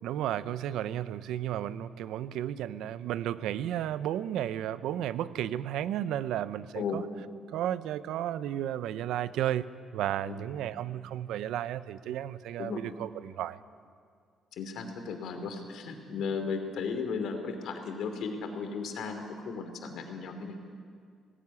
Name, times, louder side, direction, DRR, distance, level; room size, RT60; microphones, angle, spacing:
voice 1, 0.0-7.0 7.5-9.7 9.9-13.6, right 11 dB, 85° right, 15 dB, 0.7 m, -33 dB
voice 2, 14.6-20.6, left 5 dB, 70° left, 6 dB, 2.9 m, -35 dB
18.5 x 17.5 x 9.7 m, 2.1 s
cardioid pair, 150°, 0 cm